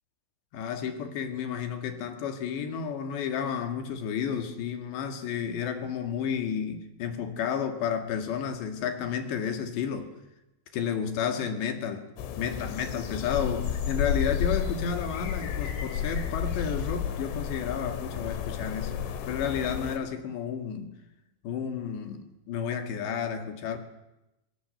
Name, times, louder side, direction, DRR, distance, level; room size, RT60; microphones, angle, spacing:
voice 1, 0.5-10.1 10.7-12.1 12.4-20.9 21.4-23.8, left 7 dB, 70° left, 6 dB, 4.1 m, -31 dB
sound 1, 12.2-20.0, left 8 dB, 90° left, 4.4 m, -32 dB
24.0 x 23.5 x 7.8 m, 0.93 s
omnidirectional pair, 5.5 m